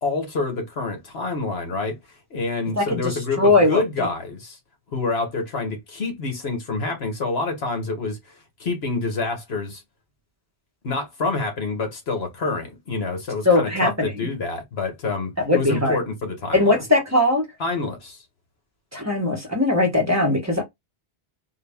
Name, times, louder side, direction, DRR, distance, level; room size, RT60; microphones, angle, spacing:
voice 1, 0.0-2.0 2.3-4.6 4.9-8.2 8.6-9.8 10.8-16.8 17.6-18.2, left 3 dB, 70° left, 1.4 m, -27 dB
voice 2, 3.4-4.1 13.5-14.1 15.5-16.0 16.5-17.4 18.9-20.6, left 2 dB, 15° right, 0.9 m, -19 dB
3.9 x 2.3 x 3.5 m
omnidirectional pair, 1.1 m